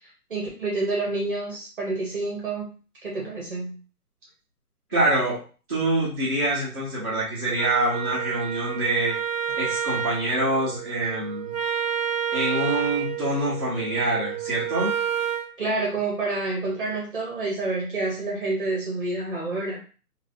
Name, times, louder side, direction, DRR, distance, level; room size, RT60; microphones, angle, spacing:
voice 1, 0.3-2.7 3.0-3.8 15.6-19.8, right 3 dB, 35° right, -3 dB, 1.0 m, -28 dB
voice 2, 4.9-5.4 5.7-9.1 9.6-11.5 12.3-14.9, right 1 dB, 15° right, -16 dB, 0.7 m, -25 dB
Wind instrument woodwind instrument, 7.5-15.5, right 9 dB, 60° right, 0.6 m, -29 dB
3.8 x 2.5 x 2.6 m, 0.37 s
hypercardioid pair, 165°, 46 cm